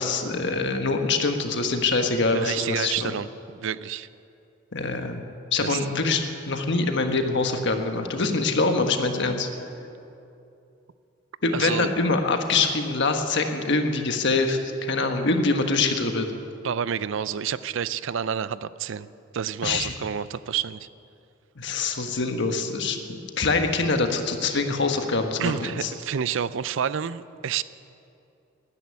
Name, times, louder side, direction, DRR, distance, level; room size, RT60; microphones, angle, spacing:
voice 1, 0.0-3.1 4.7-5.2 5.5-9.5 11.4-16.3 19.6-19.9 21.6-25.9, left 3 dB, 60° left, 5 dB, 1.4 m, -24 dB
voice 2, 2.3-4.1 5.6-5.9 11.5-11.9 16.6-19.1 19.3-20.9 25.4-27.6, right 8 dB, 65° right, 16 dB, 0.4 m, -29 dB
13.0 x 10.5 x 9.7 m, 2.7 s
head